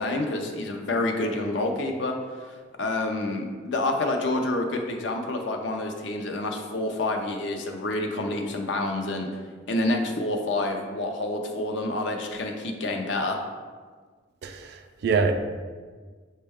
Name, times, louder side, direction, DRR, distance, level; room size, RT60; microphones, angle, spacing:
voice 1, 0.0-2.1 2.8-9.3 9.7-13.4, left 2 dB, 70° left, 3 dB, 0.5 m, -28 dB
voice 2, 14.4-15.3, right 5 dB, 55° right, 7 dB, 0.3 m, -25 dB
5.3 x 2.2 x 3.4 m, 1.5 s
head